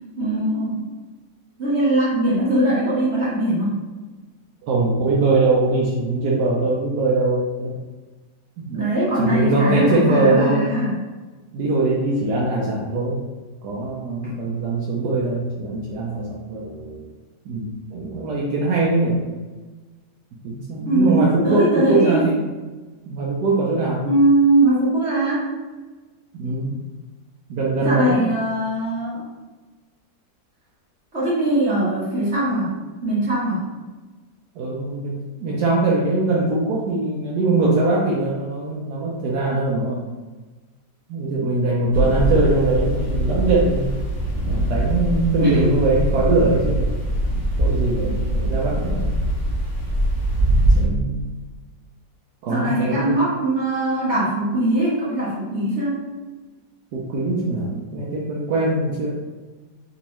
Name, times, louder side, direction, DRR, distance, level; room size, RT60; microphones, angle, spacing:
voice 1, 0.2-0.8 1.6-3.8 8.7-11.0 14.2-14.3 20.9-22.3 24.0-25.5 27.8-29.3 31.1-32.7 33.0-33.6 45.4-45.7 52.5-56.0, right 1 dB, 50° right, -8 dB, 0.9 m, -21 dB
voice 2, 4.6-7.7 8.6-8.8 9.2-10.7 11.5-13.2 13.6-17.1 17.4-19.2 20.4-22.4 23.1-24.1 26.3-26.8 27.5-28.2 34.6-40.0 41.1-43.9 44.5-46.9 47.6-49.1 50.8-51.3 52.4-53.2 56.9-59.1, right 2 dB, 70° right, -4 dB, 1.1 m, -22 dB
sound 1, 41.9-50.9, right 1 dB, 20° left, 1.5 m, -22 dB
3.5 x 3.0 x 2.9 m, 1.2 s
omnidirectional pair, 2.0 m